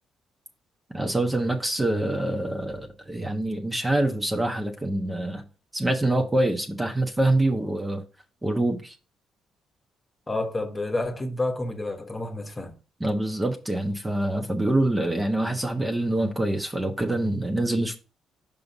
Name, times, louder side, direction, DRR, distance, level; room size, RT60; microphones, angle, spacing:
voice 1, 0.9-5.4 5.7-8.0 8.4-8.9 13.0-18.0, right 1 dB, 15° right, 1.2 m, -25 dB
voice 2, 10.3-12.8, left 2 dB, 20° left, 1.4 m, -29 dB
5.6 x 5.4 x 4.1 m
cardioid pair, 90°, 0 cm